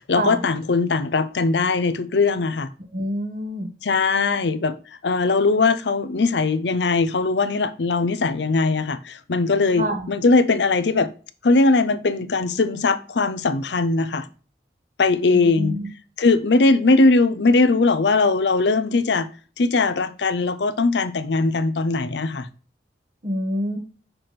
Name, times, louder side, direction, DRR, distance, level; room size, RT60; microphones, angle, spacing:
voice 1, 0.1-2.7 3.8-4.7 5.0-11.1 11.4-14.3 15.0-15.8 16.2-19.3 19.6-22.5, left 3 dB, 85° left, 0.6 m, -20 dB
voice 2, 2.9-3.7 9.8-10.1 15.3-15.9 23.2-23.8, equal, 45° right, 1.4 m, -26 dB
6.0 x 3.4 x 5.8 m
head